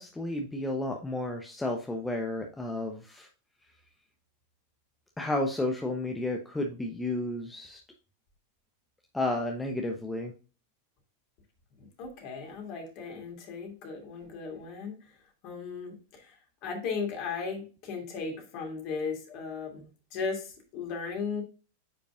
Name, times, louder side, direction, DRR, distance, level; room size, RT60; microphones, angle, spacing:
voice 1, 0.0-3.3 5.2-7.8 9.1-10.3, left 2 dB, 10° left, 2 dB, 0.9 m, -32 dB
voice 2, 11.8-14.9 15.4-16.3 16.6-21.4, left 5 dB, 40° left, 1 dB, 2.8 m, -36 dB
9.3 x 5.1 x 2.5 m, 0.35 s
figure-of-eight pair, 90°, 0 cm